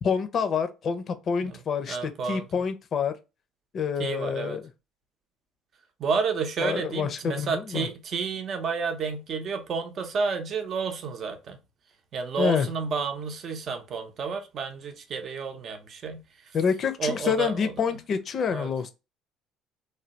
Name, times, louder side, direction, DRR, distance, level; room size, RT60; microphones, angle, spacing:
voice 1, 0.0-3.1 3.7-4.6 6.6-7.9 12.4-12.7 16.5-18.9, left 6 dB, 50° left, 0.6 m, -27 dB
voice 2, 1.9-2.5 4.0-4.6 6.0-11.6 12.1-16.6 17.0-17.7 18.5-18.7, right 5 dB, 50° right, 0.6 m, -31 dB
3.3 x 2.2 x 2.8 m
supercardioid pair, 80°, 0 cm